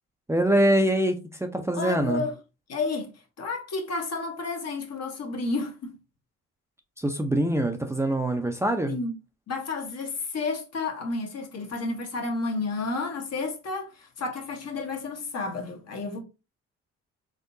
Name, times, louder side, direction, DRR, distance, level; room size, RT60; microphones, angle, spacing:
voice 1, 0.3-2.2 7.0-9.0, right 1 dB, 10° right, 0.5 m, -24 dB
voice 2, 1.7-2.3 2.7-3.1 3.4-5.9 8.9-9.1 9.5-16.2, left 3 dB, 55° left, 1.2 m, -31 dB
3.8 x 3.5 x 2.6 m
cardioid pair, 90°, 30 cm